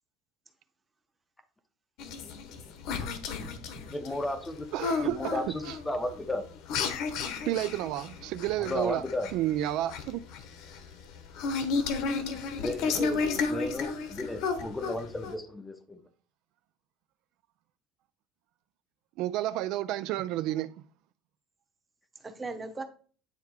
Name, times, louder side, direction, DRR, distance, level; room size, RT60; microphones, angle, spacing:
sound 1, 2.0-15.3, left 5 dB, 55° left, 1.0 m, -33 dB
voice 1, 3.4-3.9 12.9-13.5 22.1-22.8, right 3 dB, 15° right, 1.0 m, -39 dB
voice 2, 3.9-4.7 5.0-6.5 8.6-9.3 12.6-13.0 13.5-16.0, left 1 dB, 10° left, 0.7 m, -34 dB
voice 3, 4.7-5.8 7.5-9.0 9.3-10.2 19.2-20.8, right 14 dB, 55° right, 0.3 m, -31 dB
9.1 x 3.5 x 4.7 m
cardioid pair, 160°, 0 cm